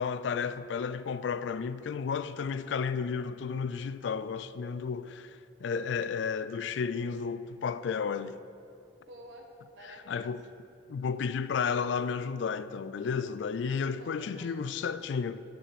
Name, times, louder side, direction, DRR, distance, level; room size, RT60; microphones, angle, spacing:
voice 1, 0.0-8.4 10.1-10.4 10.9-15.4, left 6 dB, 70° left, 0.3 m, -32 dB
voice 2, 9.0-10.4 14.0-14.7, right 1 dB, 90° right, 1.3 m, -51 dB
7.0 x 5.7 x 7.4 m
head